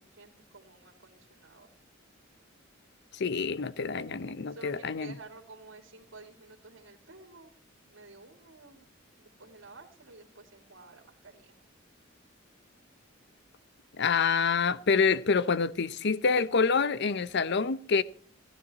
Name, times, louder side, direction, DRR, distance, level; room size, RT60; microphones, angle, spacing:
voice 1, 0.0-1.7 4.5-8.9 9.2-11.6, right 3 dB, 70° right, 2.5 m, -52 dB
voice 2, 3.1-5.1 13.9-18.0, left 5 dB, 60° left, 0.7 m, -27 dB
14.5 x 12.5 x 4.1 m
head